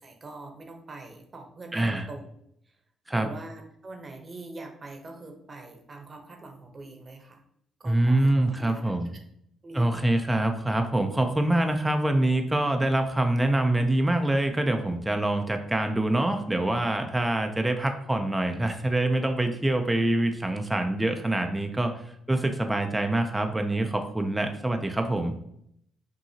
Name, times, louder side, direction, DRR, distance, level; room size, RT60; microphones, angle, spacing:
voice 1, 0.0-2.2 2.7-2.8 3.1-7.4 7.8-9.2 9.6-9.9, right 2 dB, 35° right, 4 dB, 0.8 m, -43 dB
voice 2, 1.7-2.1 3.1-3.3 7.9-9.1 9.7-21.9 22.3-25.3, right 1 dB, 10° right, 5 dB, 0.5 m, -25 dB
5.5 x 2.7 x 2.8 m, 0.72 s
cardioid pair, 90°, 0 cm